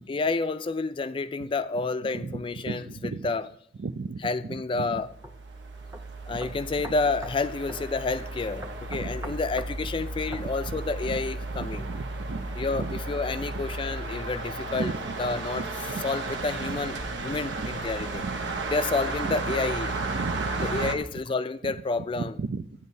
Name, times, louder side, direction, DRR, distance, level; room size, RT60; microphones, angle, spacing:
voice 1, 0.1-3.5 4.2-5.1 6.3-8.6 8.9-11.9 12.5-17.0 17.2-18.2 18.7-19.9 20.6-22.4, left 3 dB, 30° left, 0.3 m, -29 dB
voice 2, 2.7-3.3 3.8-4.2 4.8-4.9 8.9-9.1 11.1-11.2 11.8-12.5 12.8-12.9 14.7-15.1 15.6-16.0 19.2-19.4 20.1-20.9 22.2-22.6, right 4 dB, 70° right, 0.5 m, -34 dB
sound 1, 4.9-21.0, right 3 dB, 85° right, 0.8 m, -34 dB
sound 2, 5.2-5.4 5.9-6.0 6.4-7.4 7.7-7.9 8.6-9.7 10.3-10.5, right 1 dB, 15° right, 0.7 m, -41 dB
14.0 x 9.2 x 2.7 m
head